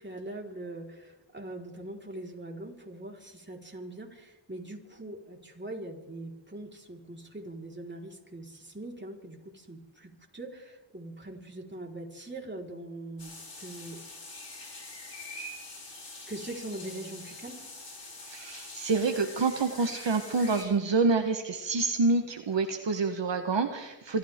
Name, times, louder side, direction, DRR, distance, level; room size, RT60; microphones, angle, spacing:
voice 1, 0.0-13.3 13.6-14.0 15.2-15.6 16.3-17.6 19.7-19.8, right 1 dB, 20° right, 0 dB, 4.5 m, -42 dB
sound 1, 13.2-20.6, left 2 dB, 60° left, 6.2 m, -44 dB
voice 2, 18.3-24.2, right 4 dB, 60° right, 6 dB, 1.4 m, -27 dB
26.0 x 14.5 x 3.7 m, 0.99 s
cardioid pair, 40°, 48 cm